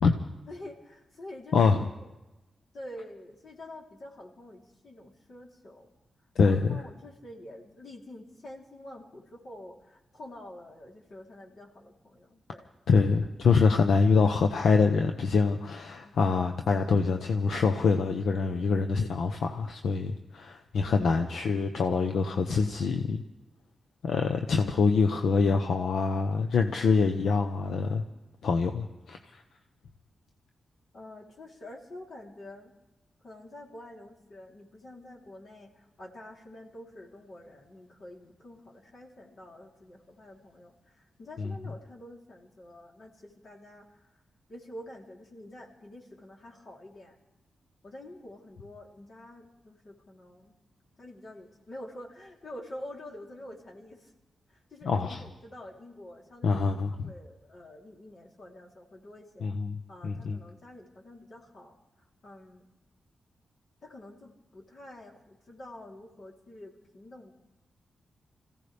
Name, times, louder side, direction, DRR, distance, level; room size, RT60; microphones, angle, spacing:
voice 1, 0.5-1.6 2.0-2.1 2.7-5.9 6.4-12.7 16.0-16.3 20.8-21.1 30.9-32.7 33.2-44.1 44.5-47.2 47.8-50.6 51.0-54.1 54.5-56.6 57.0-59.5 59.9-62.7 63.8-67.3, left 1 dB, 60° left, -1 dB, 3.4 m, -47 dB
voice 2, 1.5-1.9 6.4-6.8 12.9-23.2 24.0-28.0 28.4-29.4 41.4-41.5 54.8-55.2 56.4-57.1 59.4-59.8 60.0-60.4, left 4 dB, 85° left, 5 dB, 0.9 m, -25 dB
26.5 x 16.0 x 3.4 m, 1.0 s
cardioid pair, 90°, 0 cm